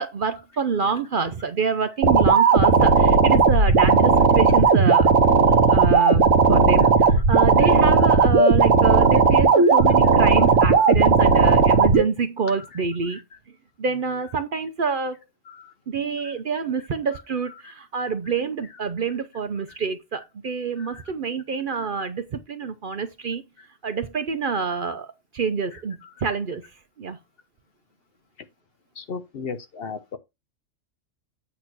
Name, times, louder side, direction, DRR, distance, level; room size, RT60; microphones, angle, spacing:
voice 1, 0.0-13.2 13.8-15.2 15.9-23.4 23.8-26.7 27.0-27.2, right 5 dB, 50° right, 0.7 m, -27 dB
sound 1, 2.0-12.0, right 4 dB, 85° right, 1.4 m, -16 dB
voice 2, 29.0-30.2, left 5 dB, 55° left, 0.8 m, -35 dB
8.6 x 3.1 x 6.0 m
omnidirectional pair, 1.3 m